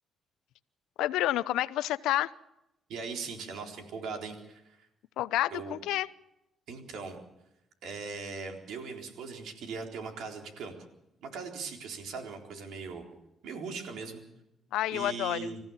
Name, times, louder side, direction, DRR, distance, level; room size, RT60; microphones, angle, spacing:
voice 1, 1.0-2.3 5.2-6.1 14.7-15.5, left 14 dB, 90° left, 16 dB, 0.7 m, -29 dB
voice 2, 2.9-4.9 5.5-5.8 6.7-7.2 7.8-10.7 11.2-13.1 13.4-14.2 14.9-15.6, right 4 dB, 80° right, 3 dB, 4.0 m, -39 dB
26.5 x 15.0 x 7.2 m, 0.88 s
cardioid pair, 90°, 0 cm